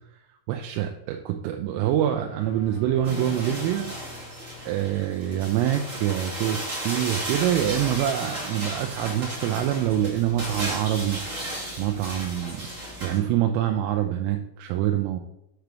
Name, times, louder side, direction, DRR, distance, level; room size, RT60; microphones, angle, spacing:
voice 1, 0.5-3.9 4.6-11.2 11.8-12.6 13.0-15.2, right 11 dB, 85° right, 4 dB, 3.2 m, -25 dB
sound 1, 1.9-6.2, left 4 dB, 75° left, 2.6 m, -46 dB
sound 2, 3.0-13.2, right 1 dB, 65° right, 0.7 m, -34 dB
7.8 x 3.4 x 5.9 m, 0.81 s
omnidirectional pair, 5.7 m